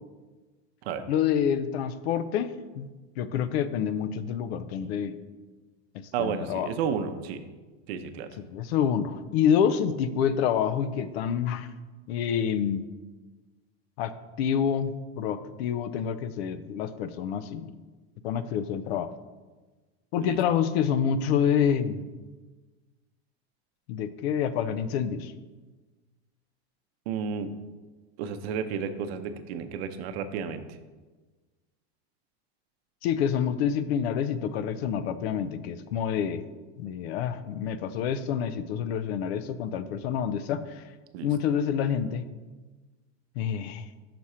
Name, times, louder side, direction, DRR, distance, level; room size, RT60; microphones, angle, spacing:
voice 1, 1.1-2.9 3.2-5.1 5.9-6.7 8.4-11.7 12.1-12.9 14.0-14.1 14.4-17.7 18.2-19.1 20.1-22.1 23.9-25.3 33.0-36.4 36.8-40.8 41.2-42.3 43.4-43.9, left 8 dB, 70° left, 13 dB, 0.5 m, -27 dB
voice 2, 6.1-7.4 7.9-8.3 20.2-20.4 27.1-27.5 28.2-30.8 41.1-41.3, right 7 dB, 70° right, 9 dB, 0.6 m, -32 dB
5.9 x 4.2 x 4.9 m, 1.3 s
supercardioid pair, 165°, 32 cm